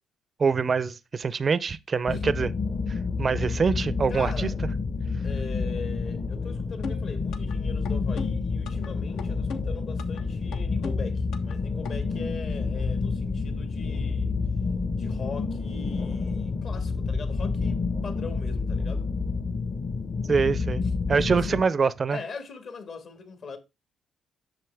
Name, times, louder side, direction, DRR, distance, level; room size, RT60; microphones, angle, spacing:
voice 1, 0.4-2.5 3.2-4.5 20.3-20.8 21.1-22.2, right 5 dB, 40° right, 0.4 m, -24 dB
sound 1, 2.1-21.6, left 4 dB, 40° left, 0.9 m, -29 dB
voice 2, 4.1-4.5 5.2-14.3 15.0-19.1 20.8-21.4 22.1-23.6, left 5 dB, 60° left, 1.7 m, -41 dB
sound 2, 6.8-7.6 7.8-8.9 9.2-10.2 10.5-11.6 11.8-11.9, left 5 dB, 85° left, 1.0 m, -38 dB
7.7 x 6.4 x 3.4 m
cardioid pair, 90°, 0 cm